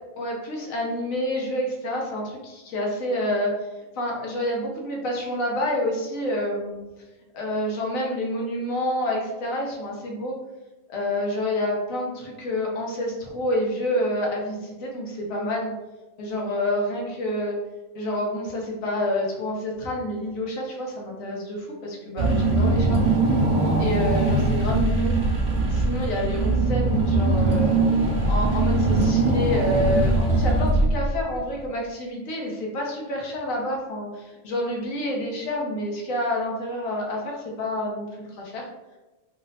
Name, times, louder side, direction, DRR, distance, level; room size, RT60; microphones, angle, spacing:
voice 1, 0.2-3.6 4.0-6.8 7.3-10.4 10.9-15.7 16.2-17.6 17.9-23.0 23.2-23.4 23.8-25.2 25.7-27.8 28.3-38.7, left 1 dB, 90° left, -1 dB, 1.2 m, -28 dB
Car / Engine, 22.2-31.3, right 2 dB, 45° right, 0.7 m, -21 dB
3.2 x 2.0 x 3.9 m, 1.1 s
omnidirectional pair, 1.4 m